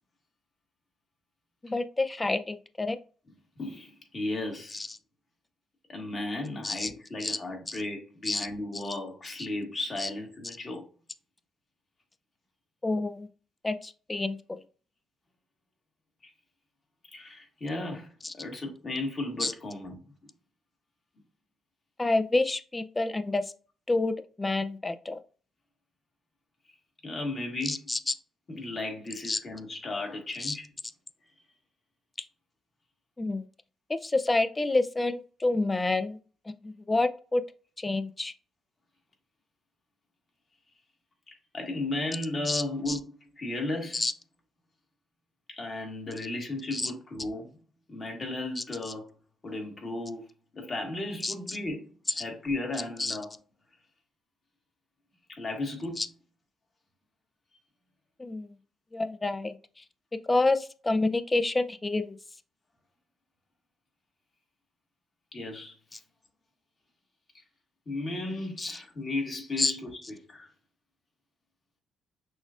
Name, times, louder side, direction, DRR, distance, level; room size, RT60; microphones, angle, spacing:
voice 1, 1.6-3.0 4.7-4.9 6.6-6.9 7.2-7.4 7.7-7.8 8.3-8.5 8.7-8.8 10.0-10.1 12.8-13.3 13.6-14.6 18.2-18.3 19.4-19.5 22.0-23.4 23.9-25.2 27.6-28.1 29.2-29.4 30.4-30.6 33.2-33.5 34.0-36.2 36.6-37.4 37.8-38.3 42.4-43.0 43.9-44.1 46.7-46.9 48.6-48.7 51.2-51.6 52.2-52.3 53.0-53.2 56.0-56.1 58.2-58.6 58.9-59.6 60.3-62.2 65.9-66.0 68.6-68.8 69.6-69.7, left 2 dB, 20° left, 0.3 m, -28 dB
voice 2, 3.6-4.8 5.9-10.8 17.1-18.1 18.3-20.0 27.0-27.8 28.5-30.6 41.3-44.0 45.6-47.5 47.9-49.1 49.4-50.2 50.5-53.3 55.3-56.0 65.3-65.8 67.9-70.5, left 2 dB, 35° left, 1.5 m, -35 dB
6.1 x 2.4 x 2.4 m
cardioid pair, 90°, 0 cm